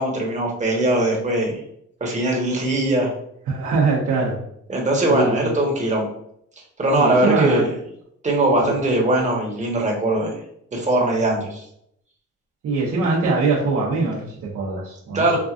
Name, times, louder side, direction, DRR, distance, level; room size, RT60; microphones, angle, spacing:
voice 1, 0.0-1.6 2.0-3.1 4.7-6.1 6.8-7.7 8.2-10.3 10.7-11.6 15.1-15.4, right 1 dB, 25° right, -1 dB, 1.2 m, -20 dB
voice 2, 3.5-4.4 5.1-5.5 6.9-7.6 8.6-8.7 11.2-11.4 12.6-15.4, right 3 dB, 70° right, -6 dB, 1.0 m, -22 dB
4.6 x 2.4 x 2.5 m, 0.71 s
cardioid pair, 90°, 30 cm